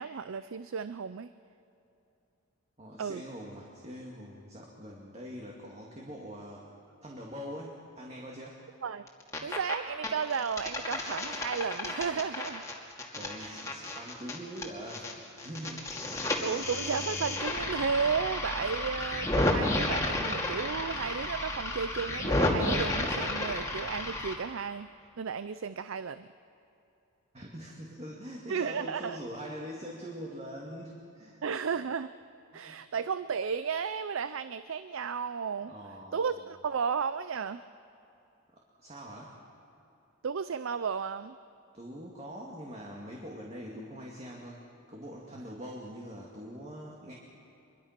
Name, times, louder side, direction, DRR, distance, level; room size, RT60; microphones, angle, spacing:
voice 1, 0.0-1.3 3.0-3.2 8.8-9.1 9.4-12.6 13.4-13.6 16.4-24.9 25.2-26.3 28.5-29.2 31.4-32.1 32.5-35.7 36.1-37.6 40.2-41.4, right 6 dB, 65° right, 13 dB, 0.5 m, -33 dB
voice 2, 2.8-6.6 7.0-8.6 13.2-16.2 27.3-31.4 32.5-32.8 35.7-36.4 38.8-39.3 41.7-44.6 44.9-47.1, equal, 30° right, -2 dB, 2.2 m, -43 dB
sound 1, 9.1-9.7 10.0-15.1 15.4-24.3, left 2 dB, 15° left, 2.4 m, -32 dB
25.5 x 22.5 x 5.9 m, 2.8 s
head